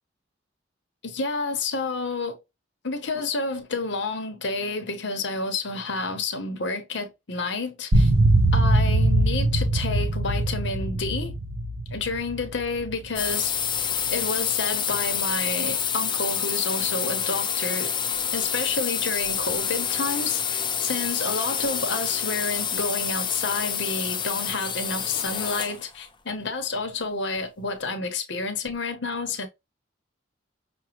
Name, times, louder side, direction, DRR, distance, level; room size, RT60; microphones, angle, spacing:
voice 1, 1.0-2.4 2.8-8.1 8.5-11.3 11.9-13.5 14.1-17.9 18.3-29.5, left 3 dB, 60° left, 0.8 m, -29 dB
sound 1, 7.9-13.3, right 1 dB, 80° right, 0.8 m, -22 dB
sound 2, 13.2-25.8, left 7 dB, 25° left, 0.4 m, -28 dB
5.9 x 2.2 x 2.9 m
head